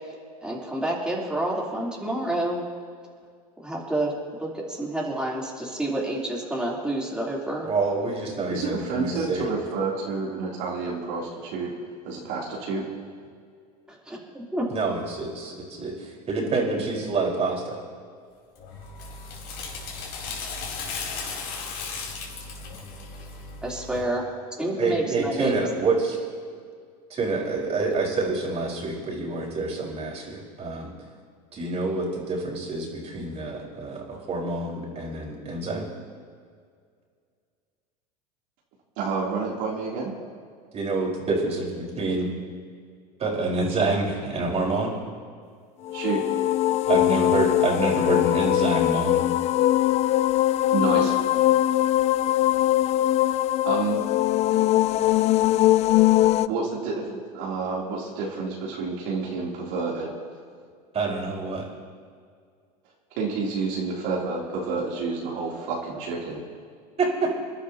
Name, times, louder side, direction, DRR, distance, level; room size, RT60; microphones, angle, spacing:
voice 1, 0.4-2.6 3.6-4.1 4.4-7.7 13.9-14.2 14.5-14.7 23.6-24.2 24.6-25.6, right 1 dB, 5° right, -5 dB, 3.6 m, -28 dB
voice 2, 7.7-9.5 14.7-15.5 15.8-15.9 16.3-17.8 24.8-26.2 27.1-30.9 31.5-35.9 40.7-42.3 43.2-44.9 46.9-49.2 60.9-61.6 67.0-67.3, right 3 dB, 35° right, -2 dB, 4.7 m, -27 dB
voice 3, 8.5-11.7 12.1-12.9 39.0-40.1 45.9-46.2 50.7-51.4 53.7-54.0 56.5-60.1 63.2-66.4, right 4 dB, 60° right, -4 dB, 3.4 m, -29 dB
sound 1, 18.6-24.0, left 4 dB, 50° left, 4.7 m, -36 dB
sound 2, 45.8-56.5, left 14 dB, 35° left, 0.4 m, -21 dB
28.5 x 11.5 x 3.0 m, 2.1 s
hypercardioid pair, 95°, 20 cm